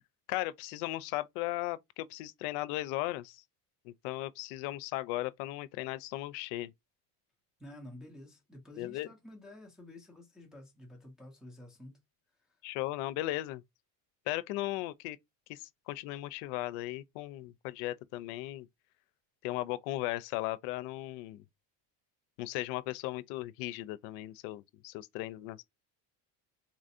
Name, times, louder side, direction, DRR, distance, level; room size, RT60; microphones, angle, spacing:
voice 1, 0.3-3.4 3.8-6.7 8.8-9.1 12.6-13.6 14.3-15.2 15.5-18.7 19.4-21.4 22.4-25.6, left 17 dB, 90° left, 0.5 m, -37 dB
voice 2, 7.6-12.0 12.4-12.6, left 1 dB, ahead, 0.3 m, -51 dB
3.9 x 2.5 x 2.6 m
cardioid pair, 180°, 42 cm